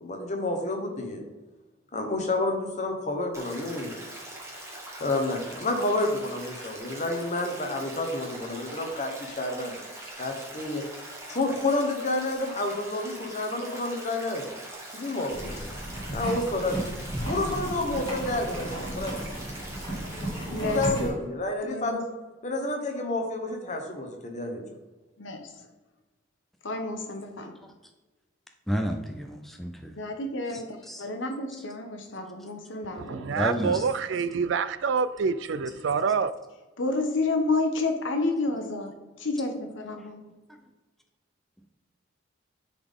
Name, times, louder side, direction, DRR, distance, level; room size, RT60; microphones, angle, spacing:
voice 1, 0.0-1.2 1.9-4.0 5.0-9.8 10.2-10.9 11.3-14.4 14.9-15.6 16.1-16.9 17.3-19.2 20.6-22.0 22.4-24.6, left 2 dB, 40° left, 3 dB, 1.1 m, -29 dB
Stream, 3.3-20.8, right 1 dB, 15° right, 1.3 m, -42 dB
sound 1, 15.3-21.1, right 1 dB, 25° left, 2.0 m, -34 dB
voice 2, 20.5-21.2 21.6-22.0 25.2-25.7 26.6-27.6 30.0-33.4 36.8-40.2, left 2 dB, 70° left, 5 dB, 1.0 m, -30 dB
voice 3, 28.7-29.9 30.9-31.0 33.4-33.8, equal, ahead, 3 dB, 0.4 m, -30 dB
voice 4, 33.0-36.3, right 5 dB, 65° right, 14 dB, 0.3 m, -27 dB
9.9 x 4.1 x 3.6 m, 1.2 s
head